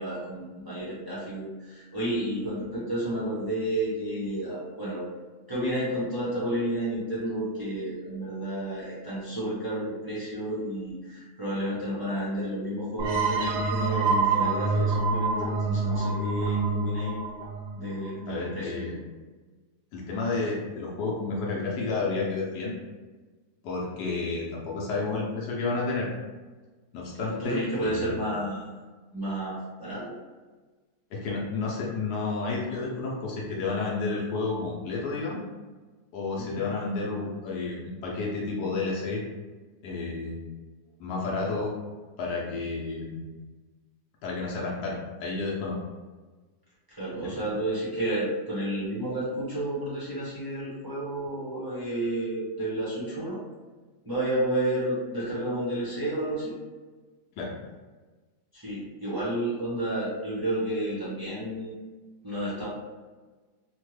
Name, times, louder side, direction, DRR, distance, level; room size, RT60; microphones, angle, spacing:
voice 1, 0.0-5.0 5.5-17.2 17.7-19.0 27.2-28.7 29.1-30.1 36.4-36.6 47.0-53.4 54.0-56.6 58.5-61.7 62.2-62.7, right 1 dB, 20° right, -9 dB, 0.6 m, -31 dB
sound 1, 13.0-18.5, right 3 dB, 85° right, 1.3 m, -26 dB
voice 2, 18.3-18.9 19.9-22.7 23.6-26.1 26.9-28.2 31.1-35.4 36.1-39.2 39.8-40.4 41.0-41.7 42.2-43.3 44.2-45.8 47.2-47.3 57.4-57.5, left 3 dB, 85° left, -4 dB, 1.2 m, -31 dB
3.4 x 2.1 x 3.1 m, 1.3 s
omnidirectional pair, 1.7 m